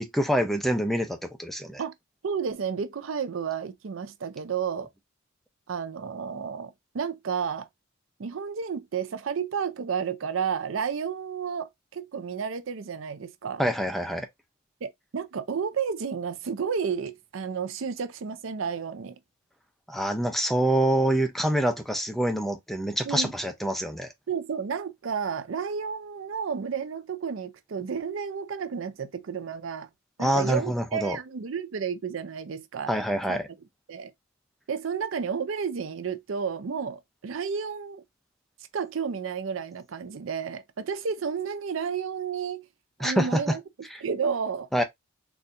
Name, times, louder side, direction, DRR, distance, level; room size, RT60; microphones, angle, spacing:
voice 1, 0.0-1.8 13.6-14.3 19.9-24.1 30.2-31.2 32.9-33.5 43.0-43.6 44.7-44.8, right 1 dB, ahead, 0.5 m, -26 dB
voice 2, 2.2-4.9 5.7-7.7 8.2-13.6 14.8-19.2 23.1-23.3 24.3-29.9 30.2-32.9 33.3-33.4 33.9-34.1 34.7-38.0 38.7-42.7 43.0-43.6 44.0-44.7, right 6 dB, 75° right, 0.5 m, -31 dB
4.1 x 2.3 x 2.6 m
head